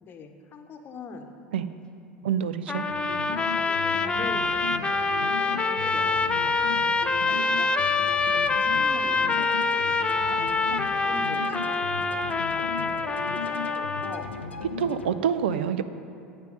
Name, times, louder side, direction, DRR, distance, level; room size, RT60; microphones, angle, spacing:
voice 1, 0.0-1.3 2.2-2.3 2.7-3.0 3.8-7.7 8.2-12.7 13.1-14.3, left 4 dB, 35° left, 6 dB, 1.0 m, -44 dB
voice 2, 2.2-2.8 14.8-15.8, right 8 dB, 70° right, 12 dB, 0.5 m, -26 dB
sound 1, 2.7-15.1, left 5 dB, 85° left, 0.6 m, -37 dB
sound 2, 2.7-14.2, left 4 dB, 15° left, 0.5 m, -26 dB
9.0 x 7.5 x 5.2 m, 2.7 s
figure-of-eight pair, 75°, 6 cm